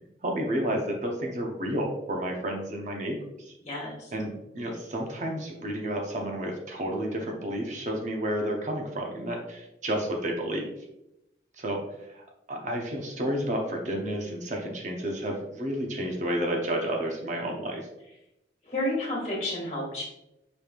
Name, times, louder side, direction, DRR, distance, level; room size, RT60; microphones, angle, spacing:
voice 1, 0.2-3.5 4.1-10.7 11.6-11.8 12.1-12.2 12.5-17.9, right 1 dB, 40° right, 1 dB, 0.6 m, -31 dB
voice 2, 3.6-4.1 18.6-20.0, left 1 dB, 40° left, -3 dB, 1.3 m, -31 dB
5.1 x 3.1 x 2.4 m, 0.88 s
head